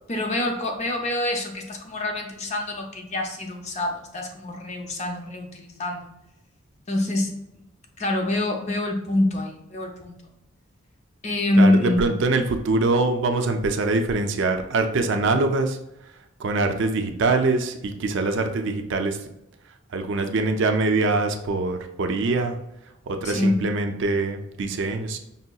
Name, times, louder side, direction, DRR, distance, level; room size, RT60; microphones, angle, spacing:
voice 1, 0.1-6.1 6.9-7.3 8.0-10.2 11.2-12.1 23.2-23.6, left 1 dB, 35° left, 3 dB, 0.6 m, -25 dB
voice 2, 11.6-15.8 16.4-19.2 19.9-22.6 23.1-25.2, right 3 dB, 60° right, 6 dB, 0.4 m, -23 dB
5.4 x 2.8 x 2.3 m, 0.85 s
head